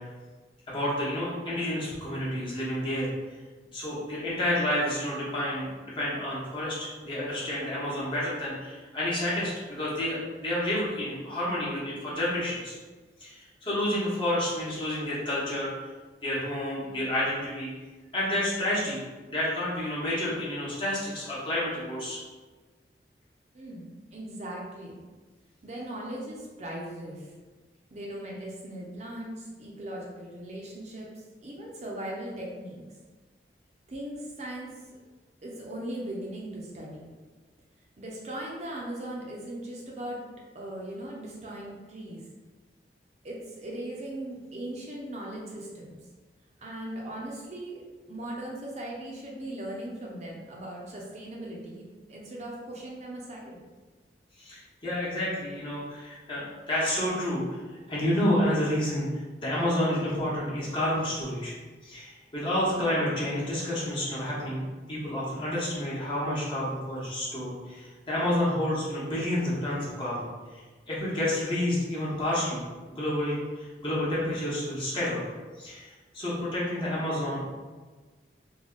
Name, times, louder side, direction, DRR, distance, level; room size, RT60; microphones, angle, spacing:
voice 1, 0.7-3.1 3.7-12.7 13.2-15.9 16.2-17.7 18.1-19.0 19.3-22.2 54.4-61.5 61.8-72.6 72.9-75.2 75.6-77.5, left 1 dB, 30° left, -7 dB, 1.1 m, -30 dB
voice 2, 23.5-25.0 25.6-27.3 27.9-32.8 33.9-35.0 35.4-37.1 38.0-40.2 40.5-42.2 43.2-46.0 46.6-47.8 48.1-53.6, right 1 dB, 40° right, -3 dB, 0.5 m, -39 dB
3.5 x 2.2 x 3.8 m, 1.3 s
head